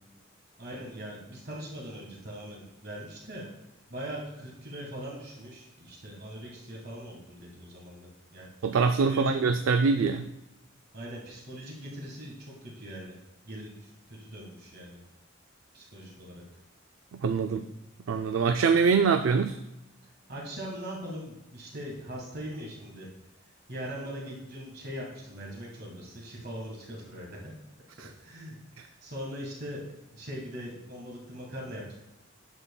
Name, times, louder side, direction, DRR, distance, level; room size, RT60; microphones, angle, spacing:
voice 1, 0.6-3.5 3.9-8.5 8.9-9.3 10.9-13.2 13.4-15.0 15.7-16.4 20.3-23.1 23.7-27.5 28.2-32.0, equal, 50° right, -2 dB, 1.6 m, -41 dB
voice 2, 8.6-10.3 17.2-17.7 18.1-19.6, right 5 dB, 75° right, 7 dB, 0.4 m, -24 dB
9.9 x 7.3 x 2.2 m, 0.89 s
head